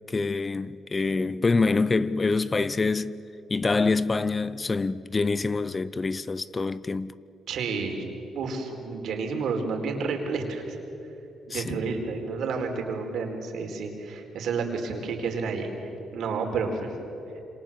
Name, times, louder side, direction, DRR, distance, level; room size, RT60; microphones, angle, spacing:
voice 1, 0.1-3.2 3.5-7.1 11.5-11.8, left 3 dB, 30° left, 0.7 m, -26 dB
voice 2, 7.5-8.0 8.3-10.8 11.5-16.9, right 4 dB, 70° right, 4.3 m, -30 dB
27.5 x 26.0 x 7.5 m
cardioid pair, 90°, 0 cm